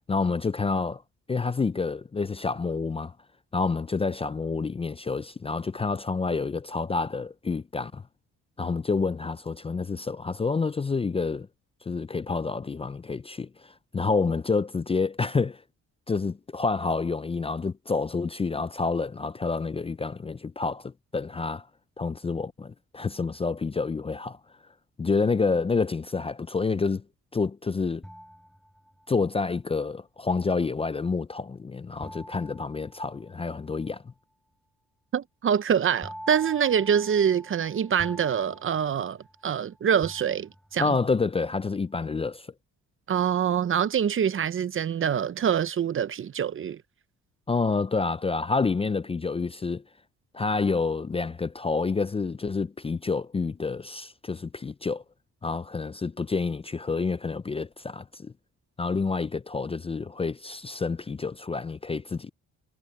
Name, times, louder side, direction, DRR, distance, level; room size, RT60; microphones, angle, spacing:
voice 1, 0.1-1.0 1.3-3.1 3.5-8.0 8.6-11.5 11.9-15.6 16.1-21.7 22.0-24.4 25.0-27.0 27.3-28.0 29.1-34.0 40.8-42.5 47.5-49.8 50.3-55.0 55.4-58.3 58.8-62.3, left 4 dB, 20° left, 0.5 m, -28 dB
sound 1, 28.0-29.2 32.0-33.7 36.0-39.6 40.0-41.0, equal, ahead, 7.5 m, -44 dB
voice 2, 35.1-40.9 43.1-46.8, right 8 dB, 45° right, 0.8 m, -25 dB
cardioid pair, 90°, 30 cm